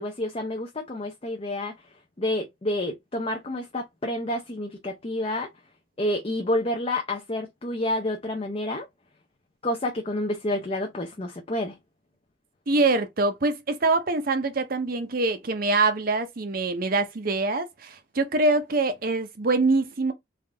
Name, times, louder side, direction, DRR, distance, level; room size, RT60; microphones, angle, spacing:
voice 1, 0.0-1.7 2.2-5.5 6.0-8.9 9.6-11.8, left 1 dB, 30° left, 0.5 m, -29 dB
voice 2, 12.7-20.1, right 3 dB, 45° right, 0.6 m, -24 dB
3.5 x 2.5 x 3.3 m
head